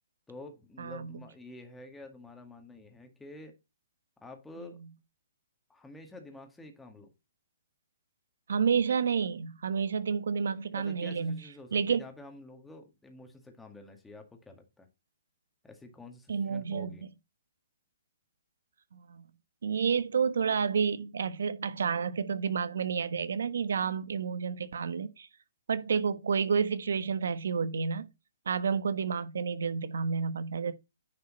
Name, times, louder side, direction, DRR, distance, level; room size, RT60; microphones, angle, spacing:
voice 1, 0.3-3.5 4.2-4.8 5.7-7.1 10.7-14.9 15.6-17.0, left 2 dB, 5° left, 2.0 m, -49 dB
voice 2, 0.8-1.1 8.5-11.4 11.7-12.0 16.3-16.9 18.9-19.2 19.6-25.3 25.7-28.1 28.4-30.7, right 6 dB, 80° right, 1.3 m, -30 dB
10.0 x 5.5 x 4.1 m
hypercardioid pair, 155°, 0 cm